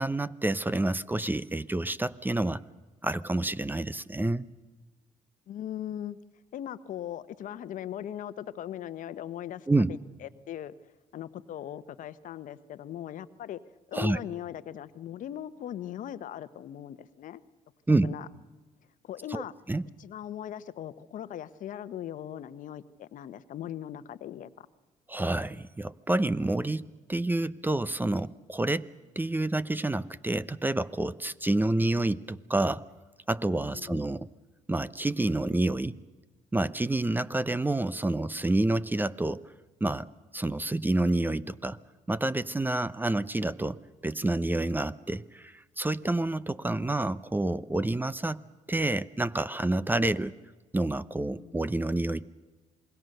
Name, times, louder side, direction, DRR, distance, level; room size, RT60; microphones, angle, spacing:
voice 1, 0.0-2.6 3.0-4.5 9.7-9.9 13.9-14.2 17.9-18.1 19.3-19.4 19.7-19.8 25.1-28.9 29.2-32.9 33.3-34.3 34.7-35.9 36.5-39.5 39.8-40.1 40.3-41.8 42.1-48.4 48.7-50.3 50.7-52.3, right 2 dB, 15° right, 17 dB, 0.8 m, -28 dB
voice 2, 5.5-6.2 6.5-10.7 11.1-13.6 13.9-17.4 18.0-18.3 19.0-19.5 20.0-24.7 33.6-34.1 51.4-51.5, left 11 dB, 65° left, 14 dB, 1.1 m, -39 dB
28.0 x 20.5 x 6.7 m, 1.2 s
supercardioid pair, 70°, 15 cm